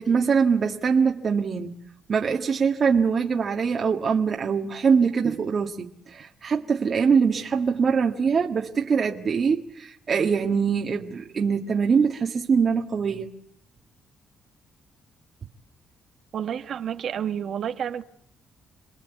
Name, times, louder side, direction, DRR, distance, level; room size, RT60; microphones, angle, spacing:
voice 1, 0.0-1.8 2.1-13.3, right 6 dB, 45° right, 1.8 m, -23 dB
voice 2, 16.3-18.0, right 9 dB, 65° right, 1.4 m, -30 dB
28.0 x 20.5 x 8.3 m
cardioid pair, 90°, 0 cm